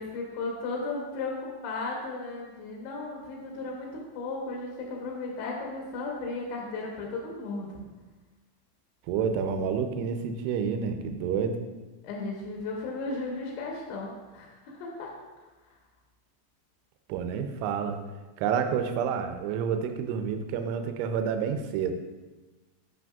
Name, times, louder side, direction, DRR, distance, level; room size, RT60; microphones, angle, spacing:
voice 1, 0.0-7.7 12.0-15.1, left 3 dB, 75° left, -1 dB, 2.9 m, -35 dB
voice 2, 9.1-11.6 17.1-18.0 18.4-21.9, right 7 dB, 85° right, 7 dB, 3.0 m, -29 dB
8.8 x 6.1 x 2.3 m, 1.2 s
omnidirectional pair, 5.4 m